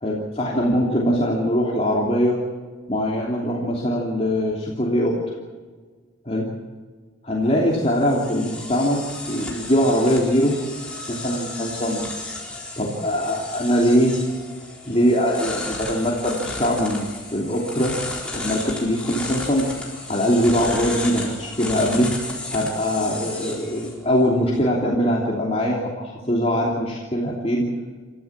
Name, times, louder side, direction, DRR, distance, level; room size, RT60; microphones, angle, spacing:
voice 1, 0.0-2.4 2.9-5.1 6.3-6.5 7.2-10.5 11.1-12.0 12.8-14.2 14.9-18.0 18.3-19.7 20.1-22.1 22.5-27.7, equal, 30° left, -3 dB, 3.0 m, -22 dB
sound 1, 7.4-24.6, left 2 dB, 5° left, 4.2 m, -34 dB
29.5 x 14.0 x 7.4 m, 1.5 s
head